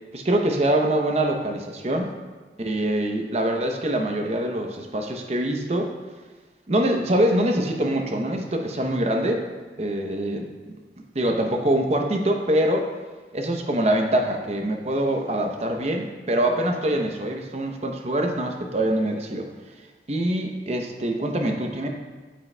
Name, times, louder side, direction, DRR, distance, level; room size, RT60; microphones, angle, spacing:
voice 1, 0.1-2.1 2.6-5.9 6.7-9.3 9.8-10.5 11.1-12.9 13.3-19.5 20.1-21.9, right 1 dB, 35° right, 3 dB, 0.7 m, -24 dB
9.5 x 7.4 x 2.2 m, 1.3 s
head